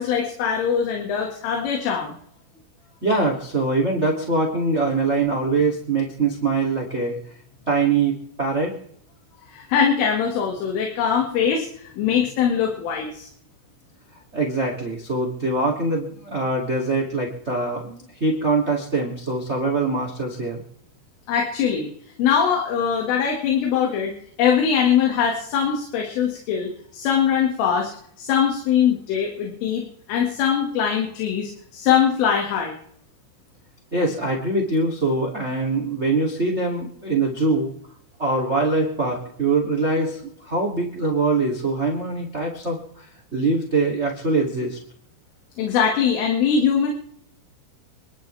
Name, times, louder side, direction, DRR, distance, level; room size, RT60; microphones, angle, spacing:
voice 1, 0.0-2.2 9.5-11.7 12.0-13.3 21.3-21.9 22.2-24.1 24.4-27.9 28.2-32.8 45.6-46.9, left 7 dB, 75° left, 1 dB, 4.6 m, -22 dB
voice 2, 3.0-7.2 7.7-8.7 14.3-20.6 33.9-37.7 38.2-43.1 43.3-44.8, right 3 dB, 20° right, 0 dB, 2.0 m, -23 dB
28.5 x 11.5 x 3.5 m, 0.68 s
omnidirectional pair, 5.9 m